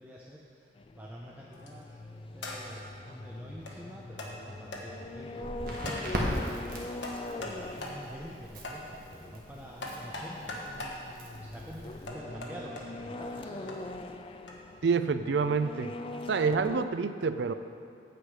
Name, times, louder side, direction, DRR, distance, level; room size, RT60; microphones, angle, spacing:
voice 1, 0.0-13.9, equal, 10° right, -4 dB, 0.6 m, -48 dB
sound 1, 0.8-16.9, left 2 dB, 30° left, 0.3 m, -43 dB
sound 2, 1.5-1.8 2.4-2.8 3.7-3.8 4.2-4.3 4.7-4.8 5.8-6.1 7.0-7.6 7.8-8.0 8.6-8.8 9.8-11.0 12.1-12.8 13.7-13.8 14.5-14.6, left 2 dB, 75° left, 1.3 m, -39 dB
Crackle, 5.4-12.1, equal, 50° right, 1.5 m, -39 dB
voice 2, 14.8-15.9 16.3-17.5, right 5 dB, 70° right, 11 dB, 0.4 m, -27 dB
9.2 x 7.9 x 4.9 m, 2.4 s
head